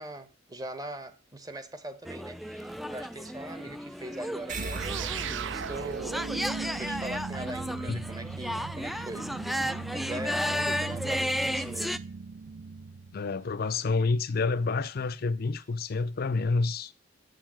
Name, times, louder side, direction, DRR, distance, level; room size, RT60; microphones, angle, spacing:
voice 1, 0.0-6.2 6.8-12.0, right 1 dB, 20° right, 1.0 m, -41 dB
sound 1, 2.0-12.0, equal, ahead, 0.4 m, -34 dB
sound 2, 4.5-9.3, right 2 dB, 45° right, 1.6 m, -42 dB
sound 3, 4.6-13.4, right 5 dB, 70° right, 0.5 m, -38 dB
voice 2, 13.1-16.9, left 3 dB, 50° left, 0.5 m, -28 dB
7.1 x 6.6 x 7.5 m
head